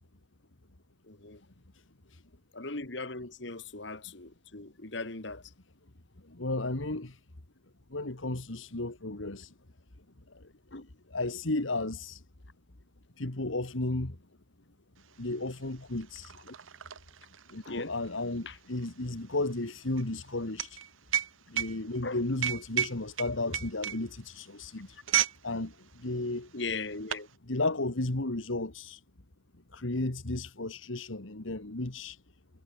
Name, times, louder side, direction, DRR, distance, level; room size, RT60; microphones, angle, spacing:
voice 1, 1.0-1.4 2.5-5.4 10.7-10.9 16.5-16.6 17.7-17.9 18.5-18.6 22.0-22.2 26.5-27.3, left 3 dB, 65° left, 2.2 m, -38 dB
voice 2, 6.2-7.2 7.9-9.5 10.3-10.5 11.1-12.2 13.2-14.2 15.2-16.3 17.5-20.8 21.5-25.0 25.4-26.5 27.5-29.0 29.7-32.2, left 2 dB, 80° left, 2.0 m, -34 dB
sound 1, 15.1-15.2 15.5-25.4 25.7-26.0 26.7-27.3, right 10 dB, 85° right, 1.0 m, -33 dB
head